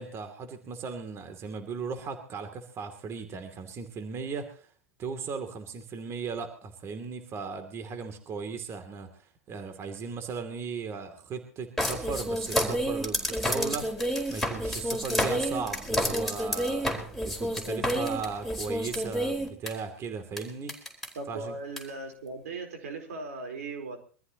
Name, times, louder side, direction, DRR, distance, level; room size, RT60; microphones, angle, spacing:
voice 1, 0.0-4.7 5.0-13.9 14.3-16.9 17.2-20.7 21.3-21.5, right 5 dB, 35° right, 7 dB, 2.8 m, -37 dB
sound 1, 11.8-19.7 20.4-20.5 20.7-21.1 21.8-21.9, equal, ahead, 4.4 m, -29 dB
voice 2, 21.2-24.0, right 3 dB, 80° right, 5 dB, 4.1 m, -38 dB
24.0 x 14.5 x 3.0 m, 0.39 s
hypercardioid pair, 105°, 8 cm